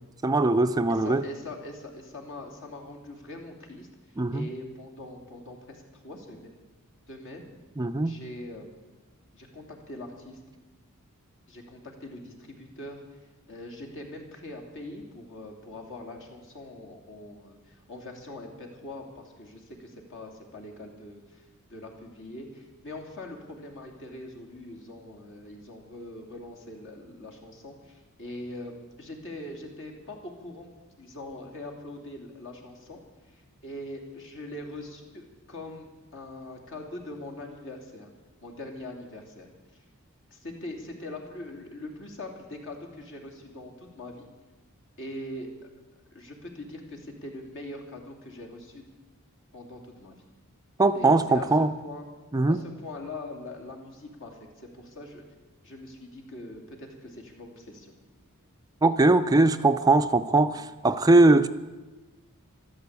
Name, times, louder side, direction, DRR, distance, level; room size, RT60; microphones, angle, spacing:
voice 1, 0.2-1.2 4.2-4.5 7.8-8.2 50.8-51.7 52.3-52.6 58.8-61.5, right 2 dB, 15° right, 0.4 m, -21 dB
voice 2, 0.9-3.9 4.3-6.5 7.1-7.4 8.0-8.7 9.3-10.4 11.5-13.2 13.5-30.7 31.0-33.0 33.3-35.9 36.1-38.1 38.4-39.8 40.3-44.3 45.0-45.7 46.1-48.8 49.5-50.2 50.9-52.1 52.5-55.2 55.6-57.9 60.8-61.0, left 1 dB, 60° left, 3.0 m, -42 dB
13.5 x 12.5 x 8.2 m
head